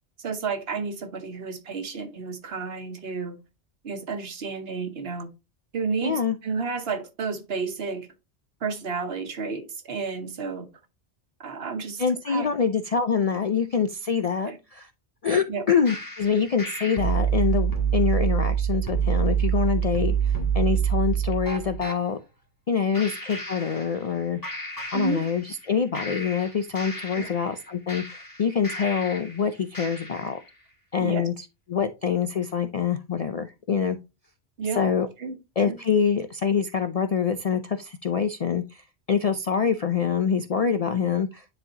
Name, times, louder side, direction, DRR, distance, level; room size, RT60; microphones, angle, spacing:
voice 1, 0.2-3.4 3.8-5.3 5.7-8.1 8.6-10.7 11.4-12.5 14.4-14.6 15.5-15.6 22.9-23.0 24.9-25.2 27.2-27.3 31.0-31.3 34.6-34.8 35.2-35.4 35.7-35.8, right 4 dB, 65° right, 1.2 m, -31 dB
voice 2, 6.0-6.4 12.0-14.9 15.2-22.2 22.7-24.4 24.9-30.4 30.9-34.0 34.8-35.1 35.6-41.5, left 6 dB, 55° left, 0.4 m, -25 dB
sound 1, 15.9-22.0 22.9-24.2 24.4-25.6 25.9-29.4 29.7-30.4, right 7 dB, 20° left, 1.5 m, -27 dB
9.9 x 4.0 x 2.8 m
omnidirectional pair, 1.1 m